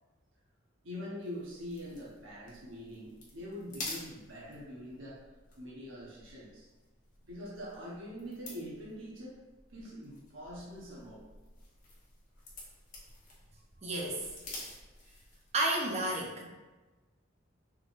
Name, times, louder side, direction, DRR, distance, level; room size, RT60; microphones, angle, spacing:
voice 1, 0.8-5.2 5.6-6.7 7.2-9.4 9.7-11.2, equal, 75° right, -6 dB, 1.0 m, -44 dB
sound 1, 1.2-15.6, left 2 dB, 40° left, 1.1 m, -50 dB
voice 2, 13.8-14.3 15.5-16.5, right 1 dB, 30° right, -1 dB, 0.7 m, -31 dB
4.6 x 3.4 x 2.5 m, 1.2 s
head